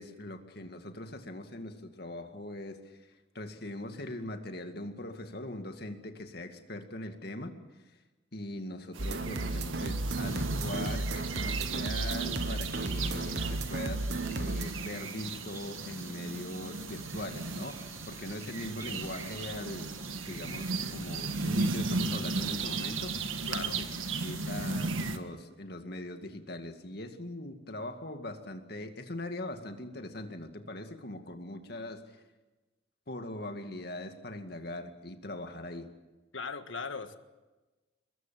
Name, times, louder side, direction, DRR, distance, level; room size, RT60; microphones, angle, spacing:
voice 1, 0.0-3.1 3.3-7.6 7.8-8.0 8.3-19.9 20.3-23.9 24.2-32.2 33.1-35.9, left 1 dB, 50° left, 6 dB, 2.2 m, -41 dB
sound 1, 8.9-25.2, right 3 dB, 90° right, 1.7 m, -36 dB
sound 2, 9.0-14.6, right 2 dB, 55° right, 1.2 m, -34 dB
sound 3, 10.2-24.8, right 3 dB, 15° right, 1.7 m, -52 dB
voice 2, 23.5-23.8 36.3-37.2, left 4 dB, 80° left, 9 dB, 1.6 m, -38 dB
23.5 x 21.5 x 7.6 m, 1.2 s
head